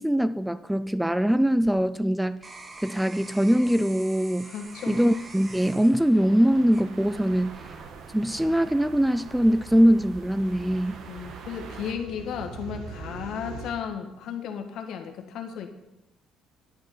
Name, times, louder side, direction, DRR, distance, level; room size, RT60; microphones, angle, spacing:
voice 1, 0.0-2.4 2.8-4.5 4.9-7.6 8.1-11.0, equal, 5° right, 0.3 m, -22 dB
sound 1, 1.3-7.5 8.0-8.5, right 3 dB, 25° right, 1.2 m, -46 dB
voice 2, 4.4-5.0 11.1-15.7, left 7 dB, 65° left, 1.6 m, -34 dB
sound 2, 4.6-11.9, right 5 dB, 60° right, 1.4 m, -46 dB
sound 3, 5.2-13.7, right 4 dB, 85° right, 1.5 m, -44 dB
11.0 x 8.9 x 5.7 m
cardioid pair, 115°, 0 cm